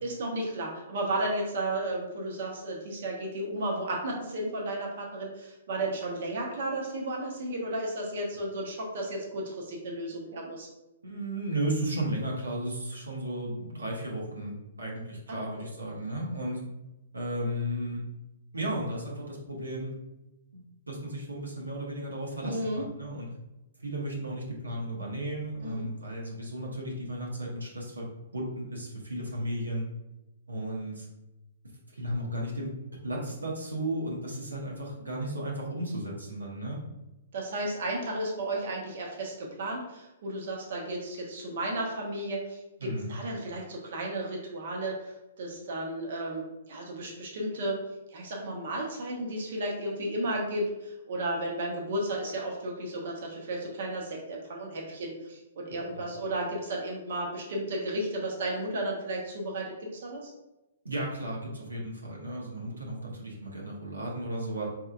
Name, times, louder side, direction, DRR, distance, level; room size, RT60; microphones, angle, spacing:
voice 1, 0.0-10.7 15.3-15.7 22.4-22.8 25.6-25.9 37.3-47.8 48.1-60.3, right 1 dB, 60° right, -1 dB, 0.9 m, -33 dB
voice 2, 11.0-16.6 17.1-18.0 18.5-20.0 20.5-23.3 23.8-29.9 30.5-31.1 31.9-32.7 33.0-36.8 42.8-43.1 60.8-64.7, right 1 dB, 90° right, -3 dB, 1.0 m, -34 dB
4.6 x 3.0 x 2.4 m, 0.96 s
hypercardioid pair, 125°, 0 cm